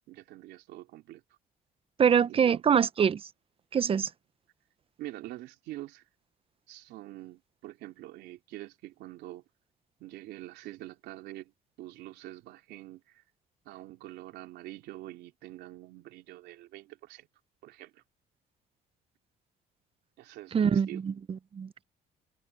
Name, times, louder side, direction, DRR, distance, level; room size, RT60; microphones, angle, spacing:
voice 1, 0.1-1.2 2.3-2.6 5.0-6.0 6.7-9.4 10.0-13.2 13.6-17.3 17.6-18.0 20.2-21.0, right 16 dB, 85° right, 3.2 m, -45 dB
voice 2, 2.0-3.2 3.7-4.1 20.5-21.1 21.5-21.8, right 7 dB, 35° right, 0.7 m, -24 dB
cardioid pair, 110°, 17 cm